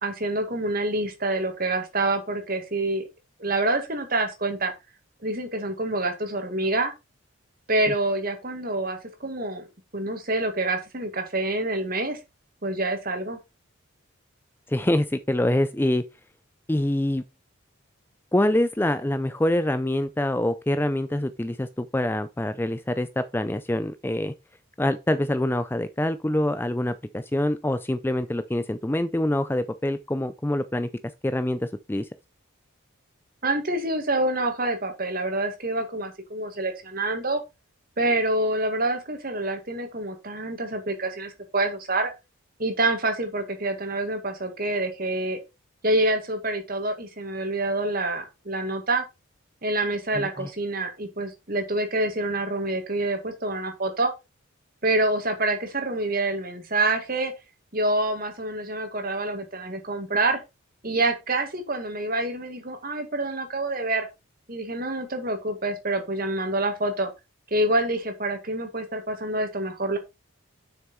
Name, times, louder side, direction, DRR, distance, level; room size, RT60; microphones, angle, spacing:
voice 1, 0.0-3.1 3.4-4.7 5.2-6.9 7.7-9.7 9.9-12.2 12.6-13.4 33.4-37.4 38.0-42.1 42.6-45.4 45.8-49.0 49.6-54.1 54.8-57.3 57.7-60.4 60.8-64.1 64.5-67.1 67.5-70.0, right 2 dB, 45° right, 2.0 m, -27 dB
voice 2, 14.7-16.0 16.7-17.2 18.3-24.3 24.8-30.9 31.2-32.1 50.1-50.5, left 1 dB, 10° left, 0.4 m, -25 dB
7.3 x 6.3 x 4.2 m
head